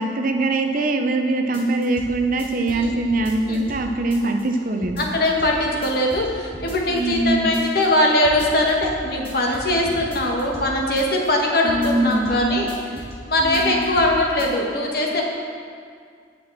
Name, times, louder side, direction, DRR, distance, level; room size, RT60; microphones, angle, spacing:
voice 1, 0.0-5.1 6.9-7.6 11.6-12.6 12.9-13.0 13.4-13.9, right 2 dB, 50° right, 4 dB, 0.8 m, -23 dB
sound 1, 1.5-2.1 2.4-3.8 4.1-4.6 4.8-5.5 5.8-6.3 6.5-7.2 7.5-8.0 8.2-9.0 9.2-10.7 11.0-11.4 11.7-12.4 12.7-13.1 13.4-14.1 14.4-14.5, equal, 30° left, 2.3 m, -37 dB
voice 2, 5.0-12.7 13.3-15.2, left 1 dB, 60° left, -1 dB, 1.7 m, -21 dB
18.0 x 6.1 x 4.3 m, 2.2 s
head